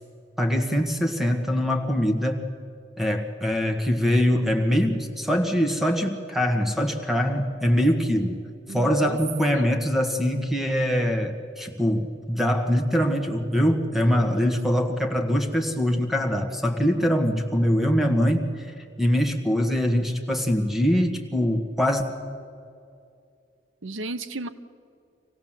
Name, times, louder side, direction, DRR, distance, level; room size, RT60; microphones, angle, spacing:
voice 1, 0.4-2.5 3.0-8.4 8.7-22.0, equal, ahead, 4 dB, 1.7 m, -23 dB
voice 2, 8.7-9.2 9.5-9.7 23.8-24.5, right 3 dB, 85° right, 12 dB, 0.9 m, -32 dB
26.0 x 17.0 x 7.6 m, 2.4 s
head